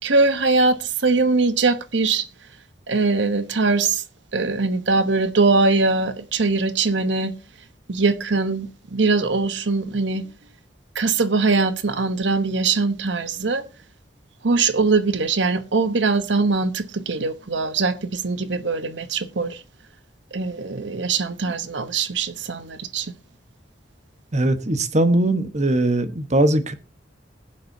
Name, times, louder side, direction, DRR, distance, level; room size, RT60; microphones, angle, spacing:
voice 1, 0.0-2.3 2.9-4.0 4.3-7.3 7.9-10.3 10.9-13.6 14.4-19.6 20.3-23.1, right 3 dB, 80° right, 1.0 m, -21 dB
voice 2, 24.3-26.7, right 1 dB, 40° right, 1.2 m, -20 dB
21.0 x 7.6 x 2.7 m
head